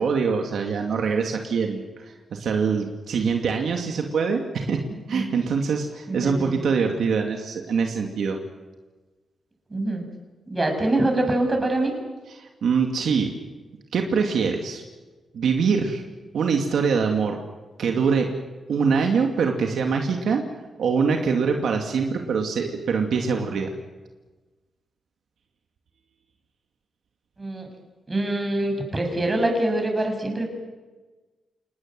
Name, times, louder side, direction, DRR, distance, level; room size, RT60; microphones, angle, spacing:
voice 1, 0.0-8.4 12.4-13.3 13.9-14.8 15.3-16.0 16.3-17.4 17.8-18.3 18.7-20.4 20.8-23.7, right 5 dB, 75° right, 3 dB, 2.5 m, -24 dB
voice 2, 6.1-6.6 9.7-10.0 10.5-11.9 27.4-27.7 28.1-30.5, right 1 dB, 25° right, 4 dB, 7.1 m, -24 dB
27.5 x 20.0 x 7.8 m, 1.2 s
cardioid pair, 90°, 0 cm